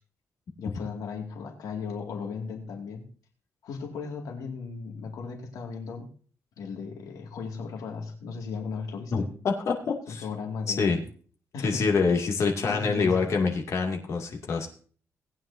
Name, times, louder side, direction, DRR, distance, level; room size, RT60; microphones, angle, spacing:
voice 1, 0.6-3.1 3.6-6.1 6.6-9.3 10.1-11.0 11.5-11.9 12.7-13.3, left 5 dB, 85° left, 2 dB, 2.3 m, -36 dB
voice 2, 9.1-10.2 10.7-11.0 11.6-14.7, left 4 dB, 55° left, 0 dB, 2.4 m, -26 dB
18.5 x 9.4 x 2.7 m, 0.43 s
wide cardioid pair, 155°, 6 cm